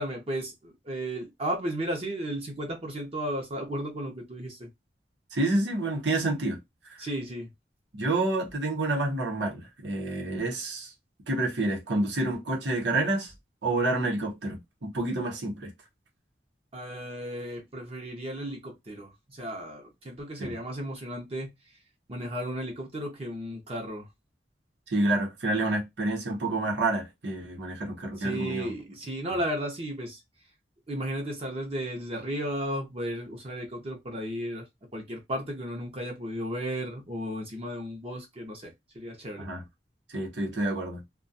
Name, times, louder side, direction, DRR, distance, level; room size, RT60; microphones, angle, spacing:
voice 1, 0.0-4.7 7.0-7.5 16.7-21.5 22.1-24.1 28.2-30.2 30.9-34.7 34.9-39.5, equal, 35° right, 0.7 m, -34 dB
voice 2, 5.3-6.6 6.9-7.1 7.9-10.9 11.3-13.3 13.6-15.7 20.4-20.6 24.9-28.7 39.4-39.6 40.1-41.0, right 2 dB, 80° right, 0.9 m, -28 dB
2.4 x 2.2 x 2.6 m
head